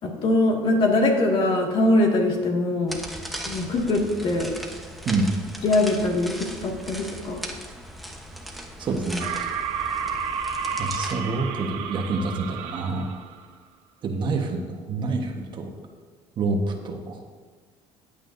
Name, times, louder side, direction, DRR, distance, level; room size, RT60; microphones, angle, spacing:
voice 1, 0.0-3.0 3.5-4.5 5.6-7.4, left 2 dB, 50° left, 0 dB, 2.1 m, -22 dB
sound 1, 2.9-11.1, equal, ahead, 1.1 m, -38 dB
voice 2, 5.0-5.4 8.8-9.3 10.8-13.1 14.0-15.7 16.4-17.2, right 3 dB, 45° right, 3 dB, 1.3 m, -27 dB
sound 2, 9.2-13.4, right 6 dB, 65° right, 1.1 m, -31 dB
14.5 x 8.7 x 2.7 m, 1.5 s
cardioid pair, 105°, 11 cm